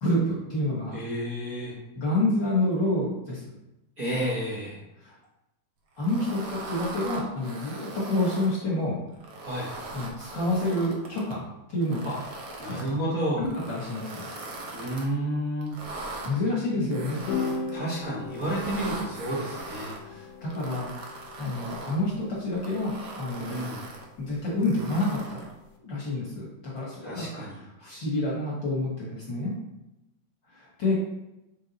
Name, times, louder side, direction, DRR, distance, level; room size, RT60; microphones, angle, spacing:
voice 1, 0.0-1.0 2.0-3.4 5.0-5.1 6.0-9.0 9.9-11.4 11.7-12.1 12.6-12.8 13.4-14.3 16.2-17.2 20.0-23.6 24.2-25.4 25.8-26.5 26.7-27.3 27.8-29.5 30.5-30.9, left 1 dB, 50° left, -5 dB, 1.6 m, -28 dB
voice 2, 0.9-1.8 4.0-4.8 9.4-9.7 12.0-12.1 12.6-13.5 14.7-15.8 17.7-19.9 23.4-23.8 27.0-27.6, right 1 dB, 45° right, -9 dB, 1.2 m, -31 dB
sound 1, 6.0-8.5 9.1-11.3 11.8-12.9 13.4-15.1 15.6-16.3 16.9-17.7 18.3-20.0 20.5-22.0 22.5-24.0 24.6-25.5, right 2 dB, 90° right, 0.9 m, -40 dB
sound 2, 17.3-25.7, left 4 dB, 80° left, 2.2 m, -39 dB
6.9 x 3.7 x 4.0 m, 0.94 s
omnidirectional pair, 3.4 m